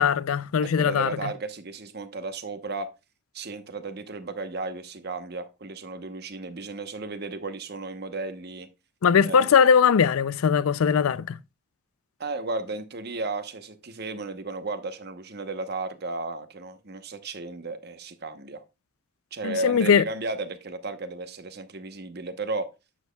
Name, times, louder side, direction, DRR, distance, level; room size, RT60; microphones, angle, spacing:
voice 1, 0.0-1.3 9.0-11.4 19.4-20.0, left 7 dB, 90° left, 0.4 m, -20 dB
voice 2, 0.6-2.9 3.3-8.7 9.2-9.5 12.2-18.6 19.3-22.7, right 3 dB, 50° right, 1.0 m, -34 dB
10.5 x 7.4 x 2.3 m
head